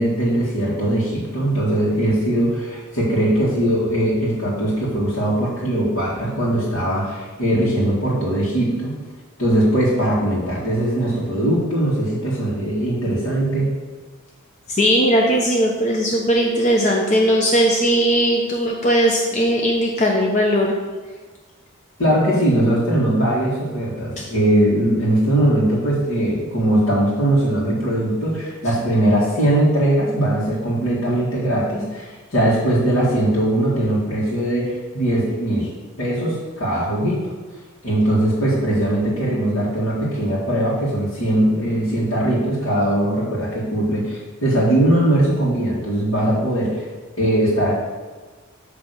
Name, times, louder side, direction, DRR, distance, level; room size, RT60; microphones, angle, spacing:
voice 1, 0.0-9.0 9.4-13.7 22.0-35.7 36.0-37.2 37.8-46.8 47.2-47.9, right 1 dB, 75° left, -9 dB, 2.0 m, -20 dB
voice 2, 14.7-20.8 24.2-24.3, equal, 35° left, -1 dB, 0.7 m, -18 dB
8.8 x 3.4 x 6.7 m, 1.4 s
head